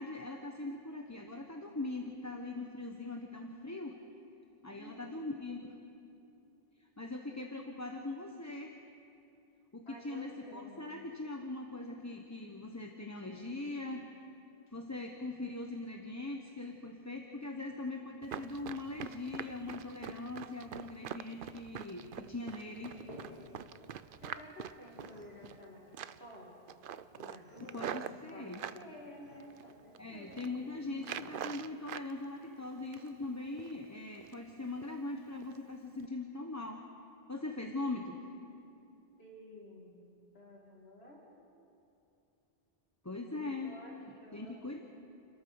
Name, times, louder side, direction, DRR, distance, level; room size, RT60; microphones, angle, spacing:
voice 1, 0.0-4.0 4.6-5.8 6.8-8.7 9.7-14.1 14.7-23.0 27.6-28.6 30.0-36.9 37.3-38.2 43.0-43.8 44.3-44.8, left 2 dB, 15° left, 2 dB, 1.0 m, -41 dB
voice 2, 4.6-5.2 9.9-11.1 24.2-26.8 27.2-30.5 39.2-40.0 40.3-41.3 43.3-44.8, left 1 dB, 85° left, -2 dB, 3.0 m, -53 dB
Run, 18.2-25.6 25.9-26.4 26.7-28.8 29.4-30.0 30.2-30.5 31.0-32.1 32.4-33.2 33.6-33.8 34.2-34.5 34.8-35.0 35.4-35.6 35.9-36.1, right 9 dB, 60° right, 0.7 m, -44 dB
sound 1, 22.7-31.4, left 1 dB, 40° right, 3.9 m, -57 dB
29.0 x 13.5 x 7.0 m, 2.8 s
omnidirectional pair, 1.0 m